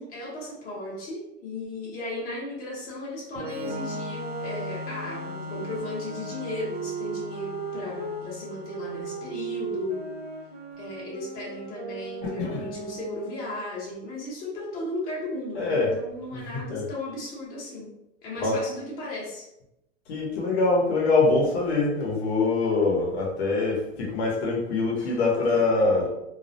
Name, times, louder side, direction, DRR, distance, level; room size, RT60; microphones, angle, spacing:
voice 1, 0.0-10.0 10.8-17.9 18.2-19.5, left 2 dB, 25° left, -6 dB, 0.8 m, -35 dB
Organ, 3.3-10.9, left 1 dB, 80° right, 0.5 m, -40 dB
sound 1, 3.5-8.2 8.7-13.6, right 5 dB, 15° right, 0.6 m, -37 dB
voice 2, 12.2-12.6 15.5-15.9 16.3-16.8 18.4-18.6 20.1-26.1, left 3 dB, 60° left, -2 dB, 0.8 m, -24 dB
2.3 x 2.0 x 2.7 m, 0.85 s
hypercardioid pair, 140°, 36 cm